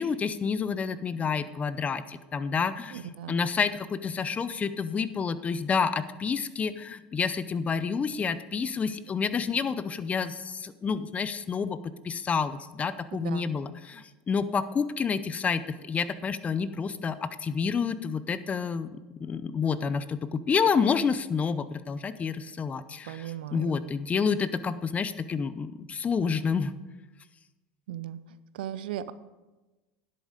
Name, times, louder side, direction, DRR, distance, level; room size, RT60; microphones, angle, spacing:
voice 1, 0.0-11.8 12.0-26.7, left 6 dB, 25° left, 14 dB, 0.6 m, -29 dB
voice 2, 2.9-3.4 13.2-13.5 23.1-23.7 27.9-28.2 28.6-29.1, right 11 dB, 80° right, 15 dB, 0.5 m, -37 dB
10.5 x 8.2 x 5.1 m, 1.1 s
hypercardioid pair, 95°, 5 cm